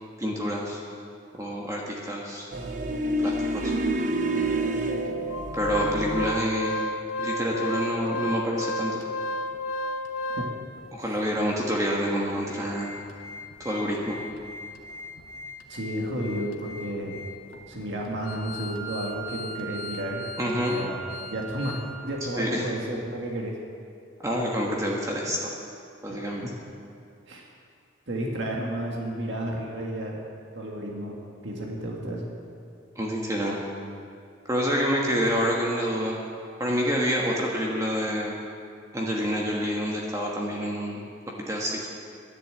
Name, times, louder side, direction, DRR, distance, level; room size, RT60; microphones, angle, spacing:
voice 1, 0.2-0.8 1.3-2.5 3.2-3.7 5.6-6.7 7.2-9.0 10.9-12.9 13.6-14.2 20.4-20.7 22.2-22.6 24.2-25.5 26.0-26.4 32.9-33.6 34.5-36.2 36.6-38.3 38.9-41.0 41.5-41.9, equal, 15° right, -2 dB, 1.3 m, -27 dB
sound 1, 2.5-6.4, right 1 dB, 40° right, 0.7 m, -28 dB
Organ, 5.3-10.8 11.4-11.5 11.7-11.9 12.3-21.9 22.2-22.3, left 1 dB, 85° left, 1.2 m, -34 dB
voice 2, 15.7-17.2 17.7-20.3 20.7-21.0 21.3-21.8 22.0-23.5 26.1-26.5 27.3-27.4 28.1-30.2 30.5-32.3, right 1 dB, 65° right, -2 dB, 1.9 m, -32 dB
11.0 x 10.5 x 7.8 m, 2.4 s
head